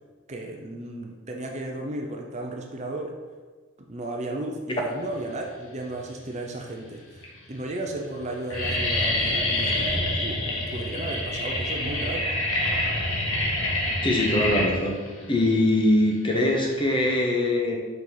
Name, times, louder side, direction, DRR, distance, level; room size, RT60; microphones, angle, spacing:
voice 1, 0.3-3.1 3.9-12.3, right 2 dB, 35° right, 1 dB, 0.6 m, -34 dB
sound 1, 5.9-6.5 7.1-7.2 7.5-7.9 8.1-17.1, left 1 dB, 90° left, 1.4 m, -27 dB
voice 2, 14.0-15.0 15.3-17.8, left 1 dB, 25° left, 0 dB, 0.9 m, -22 dB
5.2 x 4.3 x 4.8 m, 1.4 s
head